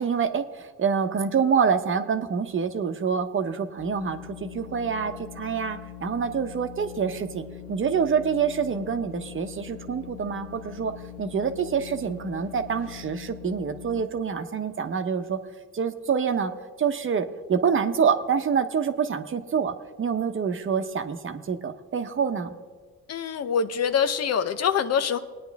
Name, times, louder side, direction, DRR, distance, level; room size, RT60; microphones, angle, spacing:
voice 1, 0.0-10.9 11.2-15.4 15.7-16.5 16.8-22.5, right 6 dB, 40° right, 8 dB, 0.9 m, -26 dB
sound 1, 3.8-14.0, left 11 dB, 80° left, 1.0 m, -42 dB
voice 2, 23.1-25.2, left 7 dB, 55° left, 11 dB, 0.8 m, -24 dB
20.5 x 9.6 x 3.5 m, 1.5 s
cardioid pair, 90°, 30 cm